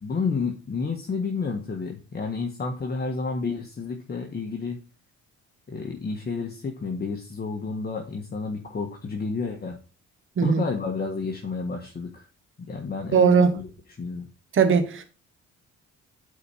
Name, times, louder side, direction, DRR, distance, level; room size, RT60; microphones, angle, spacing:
voice 1, 0.0-4.8 5.7-9.8 10.4-12.2 12.6-13.7 14.0-14.3, left 4 dB, 30° left, 1.5 m, -30 dB
voice 2, 13.1-13.6 14.5-15.0, right 6 dB, 45° right, 1.0 m, -19 dB
8.1 x 4.4 x 5.5 m
cardioid pair, 90°, 30 cm